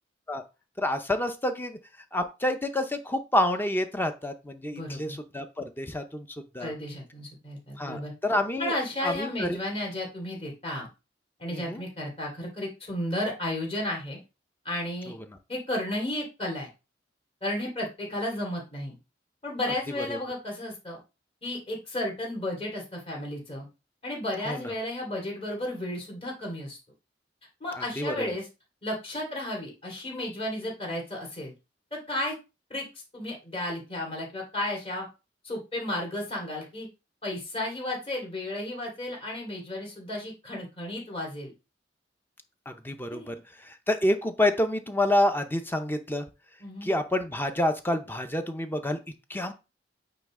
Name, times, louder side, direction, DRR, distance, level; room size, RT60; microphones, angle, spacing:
voice 1, 0.8-1.8 2.1-6.3 6.5-6.7 7.8-8.7 9.0-9.6 11.5-11.8 15.1-15.2 20.0-20.2 24.5-24.7 28.0-28.3 42.7-43.3 43.6-46.3 46.8-49.0 49.3-49.5, left 1 dB, 10° left, 7 dB, 0.6 m, -28 dB
voice 2, 4.7-5.2 6.6-8.1 8.6-10.9 11.4-14.2 14.6-15.2 15.5-16.7 17.4-19.0 19.4-21.0 21.4-23.7 24.0-26.8 27.6-28.5 28.8-31.5 31.9-32.3 32.7-32.8 33.1-35.1 35.4-36.9 37.2-41.5 43.1-43.4 46.6-46.9, left 1 dB, 35° left, -1 dB, 2.7 m, -33 dB
8.8 x 3.0 x 3.7 m, 0.28 s
head